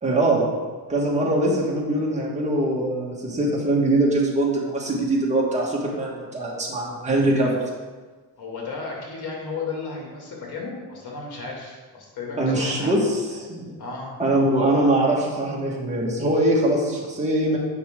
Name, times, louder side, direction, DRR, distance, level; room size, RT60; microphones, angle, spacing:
voice 1, 0.0-0.5 0.9-7.6 12.4-13.7 14.2-17.6, right 1 dB, 15° right, -4 dB, 1.8 m, -22 dB
voice 2, 8.4-13.0 13.3-13.4 13.8-14.1, left 4 dB, 75° left, -2 dB, 2.5 m, -34 dB
8.1 x 5.7 x 3.8 m, 1.4 s
cardioid pair, 120°, 39 cm